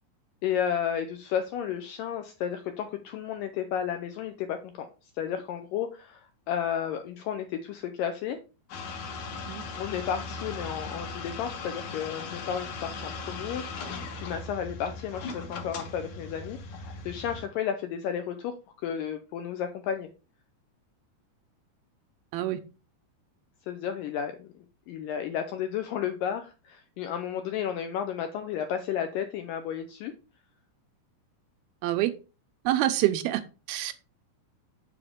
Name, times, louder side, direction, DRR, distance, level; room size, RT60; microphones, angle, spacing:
voice 1, 0.4-4.9 5.2-8.4 9.8-20.1 23.7-24.5 24.9-30.1, left 8 dB, 80° left, 7 dB, 2.0 m, -32 dB
sound 1, 8.7-17.5, left 4 dB, 60° left, 2.2 m, -38 dB
voice 2, 32.7-33.4 33.7-33.9, right 14 dB, 80° right, 9 dB, 2.4 m, -26 dB
7.0 x 6.5 x 3.6 m, 0.32 s
omnidirectional pair, 4.5 m